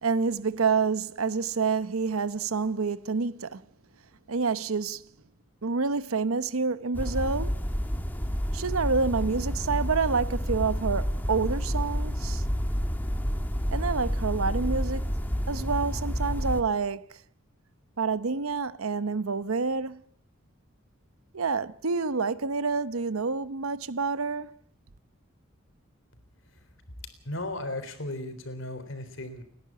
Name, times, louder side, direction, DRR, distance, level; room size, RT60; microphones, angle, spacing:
voice 1, 0.0-3.6 4.3-5.0 5.6-7.5 8.5-12.4 13.7-15.1 15.5-17.1 18.0-20.0 21.3-24.5, right 4 dB, 85° right, 0.9 m, -28 dB
sound 1, 6.9-16.6, equal, 10° left, 1.5 m, -29 dB
voice 2, 27.2-29.4, left 1 dB, 65° left, 3.7 m, -35 dB
29.5 x 11.0 x 8.5 m
head